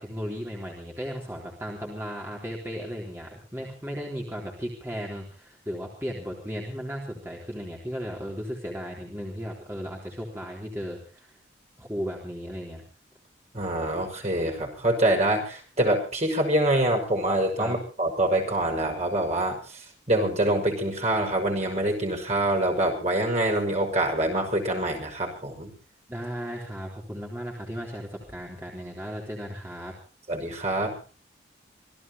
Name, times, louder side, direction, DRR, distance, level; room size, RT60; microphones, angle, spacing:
voice 1, 0.0-11.3 11.8-12.8 17.6-17.8 26.1-30.0, equal, 15° right, -2 dB, 3.8 m, -35 dB
voice 2, 13.5-19.6 20.1-25.7 30.3-30.9, right 1 dB, 35° right, 2 dB, 6.0 m, -25 dB
26.5 x 17.0 x 2.9 m, 0.36 s
head